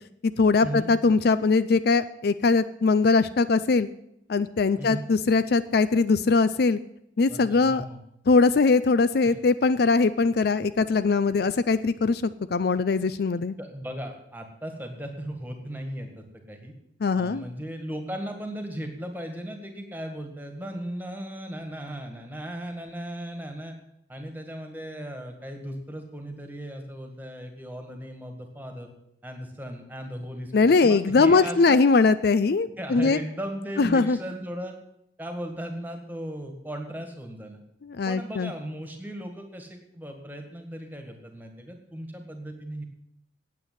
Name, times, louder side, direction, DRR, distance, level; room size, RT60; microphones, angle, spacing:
voice 1, 0.2-3.9 4.3-6.8 7.2-7.8 8.3-13.5 17.0-17.4 30.5-33.2 33.8-34.2 37.9-38.5, left 4 dB, 55° left, 14 dB, 0.4 m, -21 dB
voice 2, 7.3-8.0 9.2-9.4 13.6-16.7 17.1-23.7 24.1-28.9 29.2-31.8 32.8-34.7 35.2-37.6 38.0-42.8, right 1 dB, 10° right, 5 dB, 1.8 m, -37 dB
9.2 x 8.4 x 9.4 m, 0.77 s
head